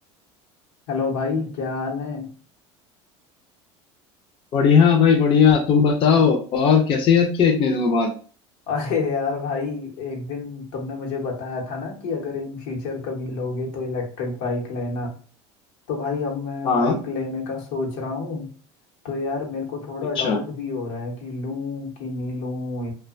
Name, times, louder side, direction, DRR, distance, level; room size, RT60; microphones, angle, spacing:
voice 1, 0.9-2.3 8.7-15.1 15.9-18.5 19.0-22.9, left 4 dB, 85° left, 0 dB, 0.9 m, -28 dB
voice 2, 4.5-8.1 16.6-16.9 20.2-20.4, left 6 dB, 35° left, 2 dB, 0.4 m, -17 dB
2.5 x 2.2 x 2.4 m, 0.40 s
supercardioid pair, 125°, 15 cm